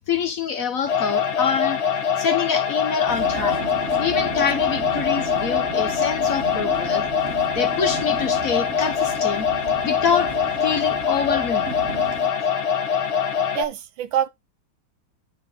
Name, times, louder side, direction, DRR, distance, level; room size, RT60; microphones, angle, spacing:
voice 1, 0.1-1.8 2.2-3.6 4.0-7.0 7.5-9.5 9.8-10.3 10.6-11.7, left 6 dB, 50° left, 1.2 m, -26 dB
sound 1, 0.9-13.6, left 7 dB, 85° left, 2.0 m, -23 dB
Vehicle, 3.1-12.3, right 4 dB, 40° right, 1.3 m, -35 dB
voice 2, 13.4-14.3, right 10 dB, 80° right, 1.6 m, -26 dB
11.5 x 4.3 x 3.8 m
omnidirectional pair, 2.1 m